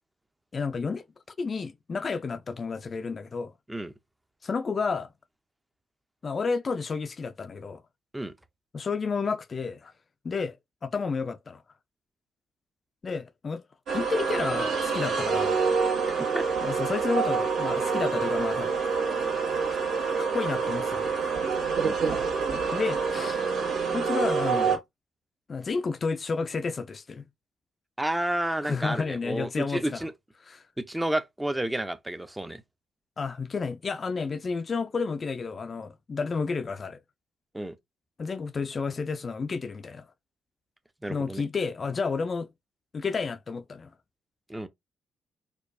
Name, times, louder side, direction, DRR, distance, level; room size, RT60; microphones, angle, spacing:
voice 1, 0.5-1.0 1.4-3.5 4.4-5.1 6.2-7.8 8.7-9.9 10.2-10.6 10.8-11.6 13.0-13.6 13.9-15.7 16.6-18.8 19.7-19.8 20.3-21.3 22.5-23.4 23.9-24.8 25.5-27.2 28.6-30.1 30.5-30.6 33.2-37.0 38.2-40.1 41.1-42.5 42.9-43.9, left 4 dB, 40° left, 0.3 m, -31 dB
sound 1, 13.9-24.8, right 5 dB, 70° right, 1.5 m, -27 dB
voice 2, 28.0-30.1 30.8-32.6 37.5-37.8 41.0-41.4 44.5-44.7, right 1 dB, 10° right, 0.5 m, -30 dB
4.4 x 2.3 x 2.6 m
cardioid pair, 75°, 0 cm